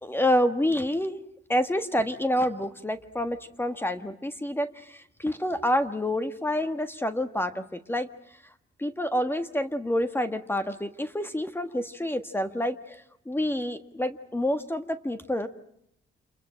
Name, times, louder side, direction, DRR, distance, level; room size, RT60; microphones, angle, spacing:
voice 1, 0.0-1.2 1.5-8.1 8.8-15.5, left 1 dB, 10° left, 10 dB, 1.6 m, -28 dB
28.5 x 21.5 x 8.9 m, 0.73 s
cardioid pair, 90°, 20 cm